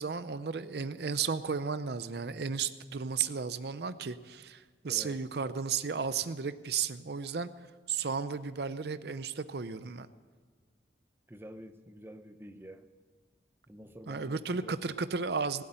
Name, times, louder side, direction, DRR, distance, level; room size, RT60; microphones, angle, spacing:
voice 1, 0.0-7.5 7.9-10.1 14.1-15.6, right 5 dB, 60° right, 13 dB, 0.6 m, -34 dB
voice 2, 4.9-5.2 11.3-12.9 13.7-14.8, equal, 10° right, 8 dB, 0.7 m, -48 dB
18.5 x 8.4 x 8.9 m, 1.5 s
head